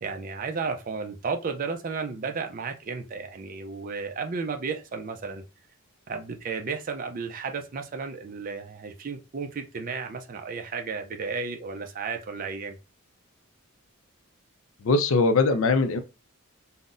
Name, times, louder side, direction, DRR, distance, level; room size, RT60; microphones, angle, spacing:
voice 1, 0.0-5.4 6.1-12.8, right 5 dB, 40° right, 0.4 m, -33 dB
voice 2, 14.8-16.0, left 3 dB, 65° left, 0.4 m, -21 dB
3.8 x 2.0 x 2.5 m
head